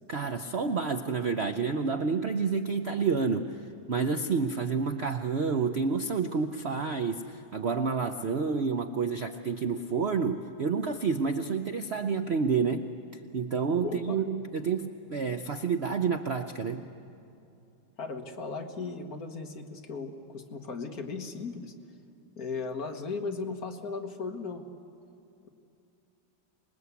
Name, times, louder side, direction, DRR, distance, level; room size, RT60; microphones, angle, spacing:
voice 1, 0.1-12.8 13.3-16.8, right 5 dB, 90° right, 7 dB, 0.5 m, -29 dB
voice 2, 13.8-14.2 18.0-21.7 22.4-24.6 25.4-25.5, left 4 dB, 50° left, 4 dB, 1.8 m, -36 dB
26.0 x 20.5 x 8.3 m, 2.7 s
omnidirectional pair, 2.2 m